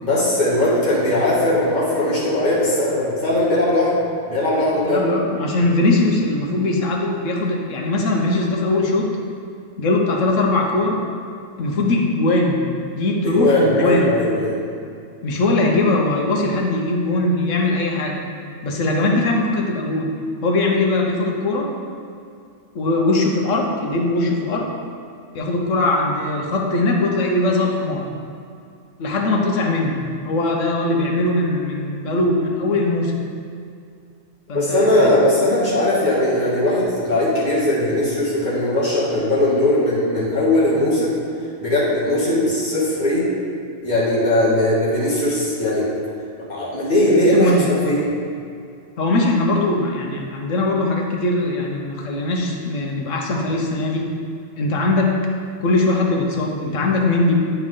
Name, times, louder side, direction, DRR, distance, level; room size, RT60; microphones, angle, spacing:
voice 1, 0.0-5.0 13.2-14.6 34.5-41.2 41.6-43.3 43.8-45.9 46.5-48.1, left 1 dB, 35° left, -9 dB, 2.0 m, -19 dB
voice 2, 4.9-9.1 9.8-11.0 11.6-12.6 13.0-14.1 15.2-18.2 18.6-20.1 20.4-21.7 22.7-24.7 25.3-28.1 29.0-33.1 34.5-35.1 47.2-48.0 49.0-54.0 54.6-55.1 55.6-57.4, left 2 dB, 75° left, 0 dB, 1.3 m, -20 dB
9.6 x 4.6 x 3.7 m, 2.4 s
omnidirectional pair, 1.3 m